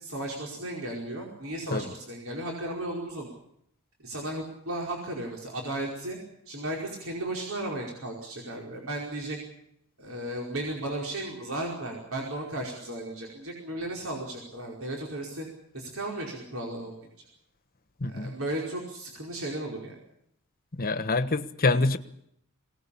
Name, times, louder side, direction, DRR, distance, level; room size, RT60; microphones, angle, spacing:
voice 1, 0.0-3.3 4.0-6.2 6.5-9.4 10.0-15.5 15.7-16.9 18.0-19.9, right 1 dB, 65° right, -1 dB, 5.0 m, -35 dB
voice 2, 18.0-18.3 20.8-22.0, left 3 dB, 40° left, 12 dB, 1.3 m, -26 dB
23.0 x 18.5 x 8.6 m, 0.74 s
head